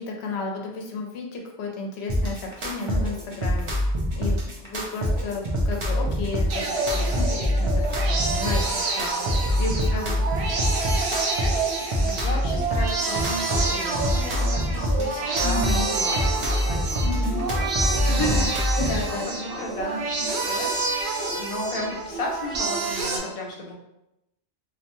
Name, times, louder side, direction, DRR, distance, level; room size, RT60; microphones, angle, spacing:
voice 1, 0.0-3.7 4.1-8.6 8.9-10.1 10.4-11.0 15.4-15.9 17.0-17.5 18.1-18.5 18.8-19.3, left 3 dB, 70° left, 1 dB, 0.8 m, -33 dB
sound 1, 2.1-19.1, equal, 45° right, 0.4 m, -25 dB
sound 2, 6.5-23.2, right 3 dB, 70° right, 0.8 m, -28 dB
voice 2, 11.6-19.0 19.3-23.7, left 1 dB, 40° left, -2 dB, 0.5 m, -34 dB
sound 3, 13.0-20.6, equal, 10° left, 0.7 m, -41 dB
2.7 x 2.1 x 2.9 m, 0.87 s
omnidirectional pair, 1.2 m